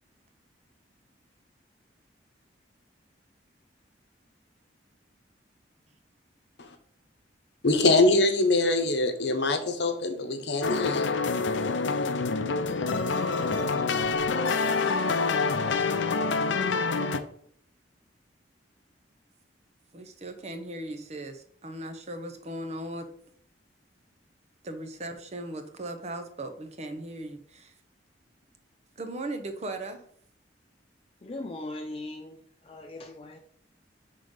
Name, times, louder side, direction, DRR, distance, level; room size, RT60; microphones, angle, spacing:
voice 1, 7.6-11.1, left 2 dB, 65° left, 0.9 m, -24 dB
sound 1, 10.6-17.2, left 4 dB, 85° left, 0.5 m, -26 dB
voice 2, 19.9-23.1 24.6-27.7 29.0-30.0, right 1 dB, 35° right, 0.7 m, -38 dB
voice 3, 31.2-33.4, left 2 dB, 30° left, 0.4 m, -39 dB
5.6 x 3.7 x 5.2 m
head